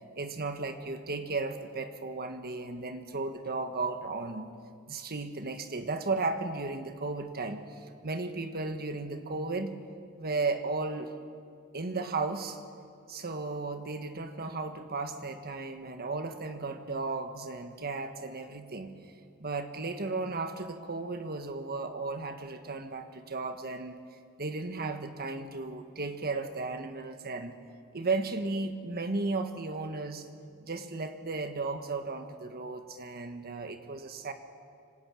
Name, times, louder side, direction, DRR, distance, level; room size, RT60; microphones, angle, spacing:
voice 1, 0.1-4.5 4.9-7.6 8.0-9.8 10.2-11.1 11.7-12.6 13.1-18.9 19.4-24.0 24.4-27.5 27.9-30.3 30.6-34.3, right 3 dB, 45° right, 7 dB, 1.5 m, -35 dB
25.5 x 19.0 x 9.0 m, 2.3 s
head